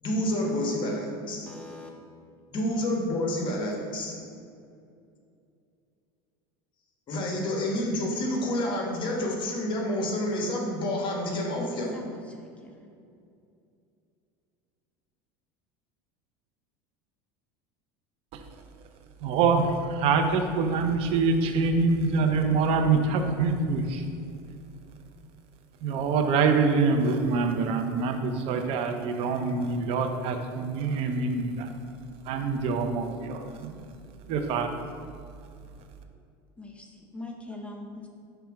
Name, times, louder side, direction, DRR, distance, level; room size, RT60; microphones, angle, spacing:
voice 1, 0.0-1.5 2.5-4.2 7.1-11.9, left 1 dB, 40° left, 0 dB, 1.3 m, -29 dB
voice 2, 1.5-1.9 11.6-12.9 36.6-38.1, left 1 dB, 10° left, 1 dB, 0.6 m, -42 dB
voice 3, 19.2-24.1 25.8-31.7 32.3-33.9 34.3-34.7, right 4 dB, 55° right, 6 dB, 0.7 m, -25 dB
5.8 x 3.4 x 4.8 m, 2.5 s
supercardioid pair, 110°, 12 cm